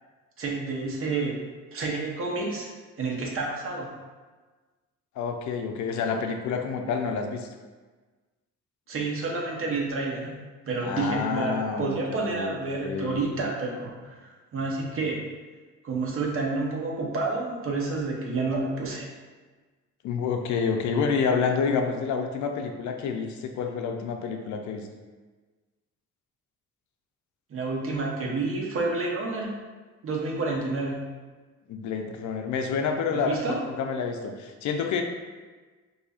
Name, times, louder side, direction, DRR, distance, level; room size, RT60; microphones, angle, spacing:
voice 1, 0.4-1.4 1.7-2.7 3.0-4.0 8.9-10.4 10.7-15.3 15.8-19.1 27.5-29.5 30.0-31.1 33.1-33.6, right 3 dB, 45° right, -2 dB, 0.7 m, -29 dB
voice 2, 5.2-7.5 10.8-12.0 12.3-13.2 20.0-24.9 31.7-33.4 33.8-35.0, left 5 dB, 70° left, 5 dB, 0.5 m, -28 dB
4.1 x 2.7 x 2.4 m, 1.3 s
cardioid pair, 110°, 30 cm